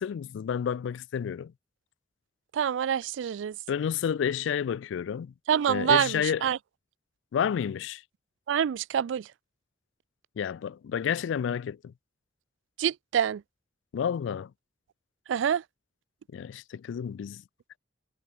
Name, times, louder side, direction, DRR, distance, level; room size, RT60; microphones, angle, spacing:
voice 1, 0.0-1.5 3.7-5.3 5.7-6.5 7.3-8.0 10.4-11.9 13.9-14.5 16.3-17.4, left 8 dB, 75° left, 0.3 m, -30 dB
voice 2, 2.5-3.5 5.5-6.6 8.5-9.3 12.8-13.4 15.3-15.6, right 8 dB, 80° right, 0.3 m, -26 dB
head